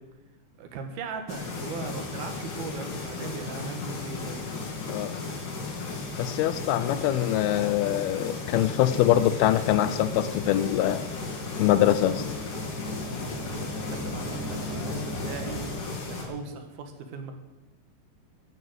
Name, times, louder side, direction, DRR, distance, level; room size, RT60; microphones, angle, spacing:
voice 1, 0.6-4.4 13.4-15.6 16.1-17.3, right 4 dB, 70° right, 6 dB, 3.4 m, -39 dB
sound 1, 1.3-16.2, left 3 dB, 55° left, 3.9 m, -35 dB
voice 2, 6.2-11.0 11.6-12.2, left 12 dB, 80° left, 13 dB, 2.5 m, -23 dB
sound 2, 6.9-15.8, equal, 45° right, 5.5 m, -41 dB
15.5 x 9.3 x 7.9 m, 1.1 s
omnidirectional pair, 4.6 m